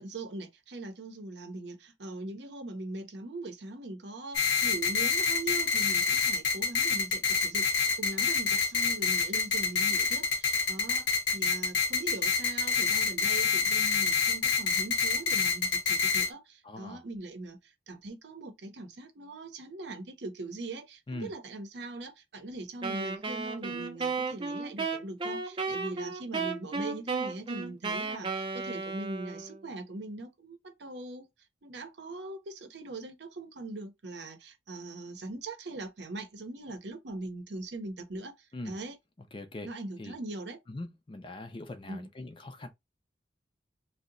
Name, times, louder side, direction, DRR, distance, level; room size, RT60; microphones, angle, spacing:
voice 1, 0.0-11.1 11.3-31.3 31.6-39.0 39.6-40.6 41.9-42.1, right 2 dB, 65° right, 0.7 m, -41 dB
sound 1, 4.3-16.3, left 5 dB, 80° left, 0.7 m, -27 dB
voice 2, 16.6-17.0 21.1-21.3 38.5-38.8 39.3-39.7 40.0-40.1 40.7-42.7, left 2 dB, 25° left, 0.5 m, -41 dB
Wind instrument woodwind instrument, 22.8-29.7, right 4 dB, 25° right, 0.5 m, -34 dB
2.7 x 2.1 x 3.8 m
head